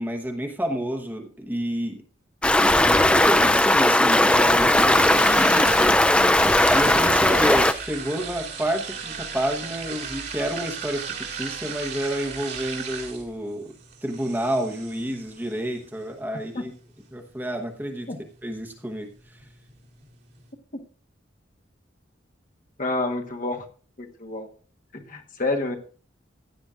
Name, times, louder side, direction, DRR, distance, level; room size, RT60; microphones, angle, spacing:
voice 1, 0.0-2.0 2.8-5.9 6.7-13.7 14.0-16.7 17.1-18.1 18.4-19.5, right 1 dB, 10° right, 3 dB, 1.1 m, -29 dB
Stream, 2.4-7.7, left 1 dB, 5° left, 0.4 m, -18 dB
sound 1, 3.2-20.5, right 6 dB, 60° right, 2.1 m, -38 dB
voice 2, 22.8-23.6 24.0-24.5 24.9-25.8, left 2 dB, 45° left, 3 dB, 1.3 m, -28 dB
16.0 x 9.7 x 2.5 m, 0.40 s
head